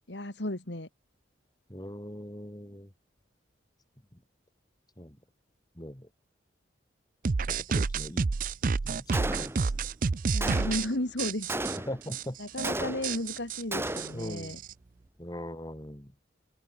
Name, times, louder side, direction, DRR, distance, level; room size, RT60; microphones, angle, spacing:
voice 1, 0.1-0.9 10.3-11.5 12.4-14.6, left 1 dB, 65° left, 2.7 m, -34 dB
voice 2, 1.7-2.9 5.0-5.2 5.8-6.1 7.5-8.3 8.7-9.9 11.9-12.4 14.1-14.6 15.2-16.1, equal, 20° left, 2.8 m, -40 dB
sound 1, 7.3-10.9 11.2-11.8 12.1-12.2 12.5-12.7 13.0-14.7, right 4 dB, 45° right, 0.5 m, -29 dB
Gunshot gunfire, 9.1-9.8 10.4-11.0 11.5-12.1 12.6-13.3 13.7-14.3, right 1 dB, 15° right, 3.2 m, -34 dB
open air
head